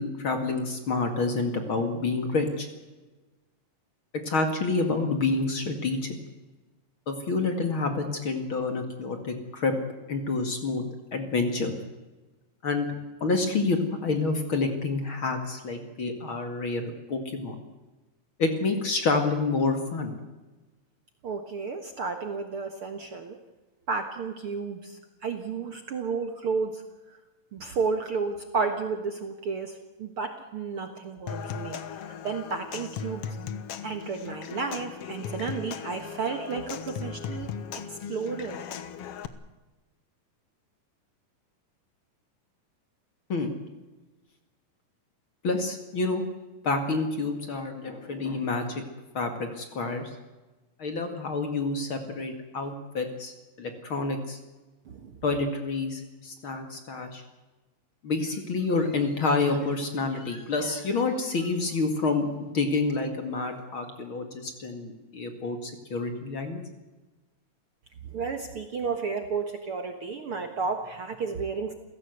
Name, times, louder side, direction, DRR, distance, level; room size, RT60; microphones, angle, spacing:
voice 1, 0.0-2.7 4.1-6.0 7.1-9.8 10.1-10.9 11.1-11.7 12.6-17.5 18.4-20.2 43.3-43.5 45.4-46.2 46.6-48.8 49.1-50.1 50.8-54.4 55.2-57.2 58.0-66.6, left 3 dB, 40° left, 6 dB, 2.5 m, -28 dB
voice 2, 21.2-23.4 23.9-26.8 27.5-31.8 32.2-33.3 33.8-37.5 37.9-38.6 54.9-55.2 68.0-71.7, right 5 dB, 50° right, 6 dB, 1.9 m, -32 dB
Human voice / Acoustic guitar / Percussion, 31.3-39.3, left 7 dB, 60° left, 1.7 m, -37 dB
29.0 x 16.0 x 8.0 m, 1.2 s
omnidirectional pair, 3.9 m